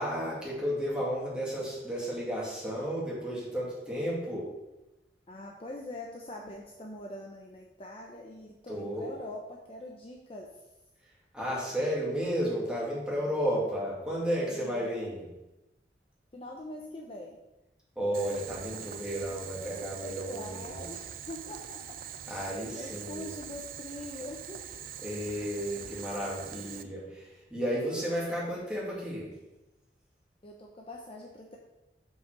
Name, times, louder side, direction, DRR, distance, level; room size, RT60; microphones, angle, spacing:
voice 1, 0.0-4.5 8.7-9.1 11.3-15.2 18.0-20.8 22.3-23.3 25.0-29.3, equal, 5° right, -6 dB, 2.1 m, -33 dB
voice 2, 5.3-10.5 14.5-14.9 16.3-17.4 20.0-21.8 22.2-24.8 30.4-31.6, left 1 dB, 30° left, -1 dB, 0.7 m, -43 dB
Boiling, 18.1-26.8, right 9 dB, 50° right, 0.4 m, -43 dB
5.6 x 4.7 x 6.0 m, 0.98 s
head